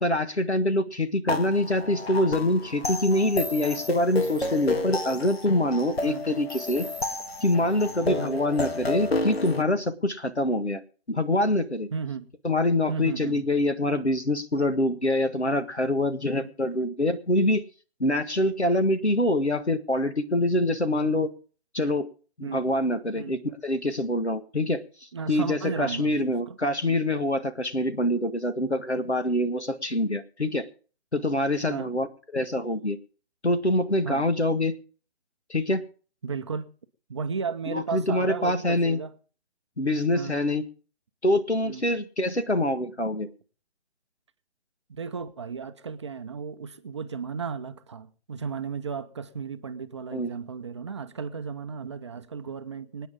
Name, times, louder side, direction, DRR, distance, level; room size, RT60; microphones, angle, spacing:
voice 1, 0.0-6.9 7.4-10.8 11.1-11.9 12.4-17.6 18.0-21.3 21.7-22.1 22.4-24.8 25.3-30.7 31.1-32.1 32.3-33.0 33.4-34.7 35.5-35.8 37.7-39.0 39.8-40.6 41.2-43.3 50.1-50.3, left 1 dB, 90° left, 1.7 m, -25 dB
sound 1, 1.3-9.6, left 2 dB, 70° left, 1.6 m, -31 dB
voice 2, 8.0-8.4 11.9-12.3 12.9-13.4 16.3-16.5 22.4-22.7 23.1-23.4 25.1-26.6 26.9-27.0 31.7-31.9 34.0-34.2 36.2-36.7 37.1-39.1 40.1-40.4 41.6-41.8 44.9-53.1, right 5 dB, 25° right, 0.6 m, -34 dB
25.0 x 9.3 x 3.6 m
figure-of-eight pair, 140°, 32 cm